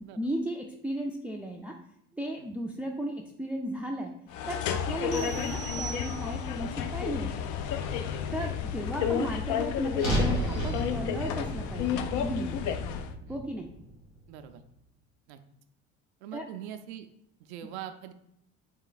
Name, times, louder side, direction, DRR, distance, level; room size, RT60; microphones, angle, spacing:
voice 1, 0.1-1.8 2.1-4.1 4.5-7.5 8.3-12.6 13.3-13.7 16.3-16.4, right 1 dB, 5° right, 1 dB, 0.3 m, -35 dB
sound 1, 4.3-13.2, left 8 dB, 65° left, 0.5 m, -32 dB
sound 2, 5.1-6.7, right 7 dB, 50° left, 1.4 m, -41 dB
sound 3, 10.0-14.3, right 1 dB, 90° left, 1.6 m, -33 dB
voice 2, 14.3-14.6 15.3-15.4 16.2-17.1 17.4-18.1, right 11 dB, 90° right, 8 dB, 0.5 m, -43 dB
4.5 x 2.4 x 3.9 m, 0.75 s
supercardioid pair, 80°, 32 cm